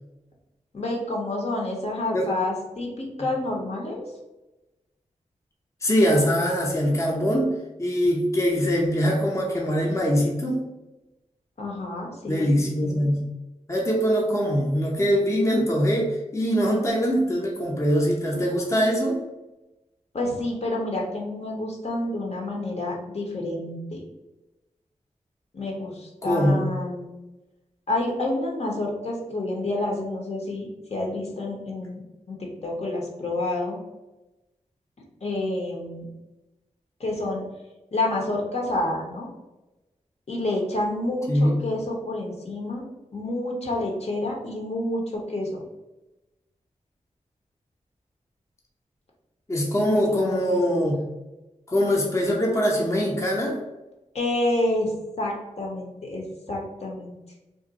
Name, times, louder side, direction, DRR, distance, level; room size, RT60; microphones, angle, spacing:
voice 1, 0.7-4.0 11.6-13.1 20.1-24.0 25.5-27.1 27.9-32.0 32.3-33.8 35.2-36.1 37.0-37.4 37.9-39.3 40.3-42.8 43.1-45.6 49.8-50.9 54.1-57.1, left 2 dB, 55° left, -1 dB, 0.8 m, -29 dB
voice 2, 5.8-7.5 7.8-10.6 12.3-13.2 13.7-19.2 26.2-26.6 41.3-41.6 49.5-51.0 51.7-53.6, equal, 20° left, -2 dB, 0.6 m, -22 dB
2.5 x 2.1 x 3.8 m, 1.0 s
cardioid pair, 60°, 13 cm